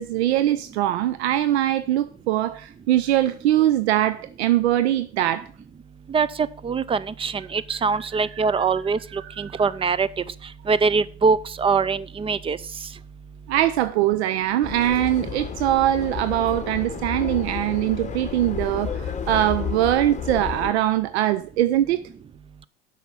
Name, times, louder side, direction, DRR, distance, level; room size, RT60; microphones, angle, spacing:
voice 1, 0.0-5.5 8.0-8.1 8.4-8.5 9.1-9.5 13.5-22.0, right 13 dB, 75° right, 0.7 m, -22 dB
voice 2, 6.1-10.1 10.7-12.6, right 5 dB, 15° right, 0.5 m, -23 dB
Subway metro underground, 14.6-20.7, left 7 dB, 20° left, 1.4 m, -31 dB
8.1 x 5.9 x 7.0 m
hypercardioid pair, 95°, 33 cm